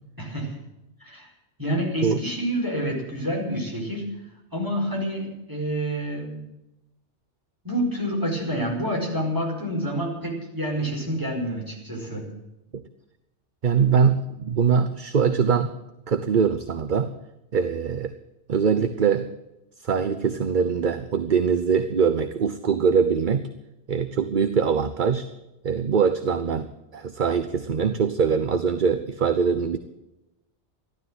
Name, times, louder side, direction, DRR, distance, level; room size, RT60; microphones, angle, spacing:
voice 1, 0.2-0.6 1.0-1.3 1.6-4.1 4.5-6.4 7.6-12.3, equal, 15° right, -1 dB, 5.1 m, -28 dB
voice 2, 13.6-15.7 16.1-17.1 17.5-18.2 18.5-19.3 19.8-23.5 23.9-25.3 25.6-29.8, right 6 dB, 45° right, 10 dB, 0.9 m, -22 dB
14.5 x 12.5 x 7.7 m, 0.93 s
omnidirectional pair, 1.2 m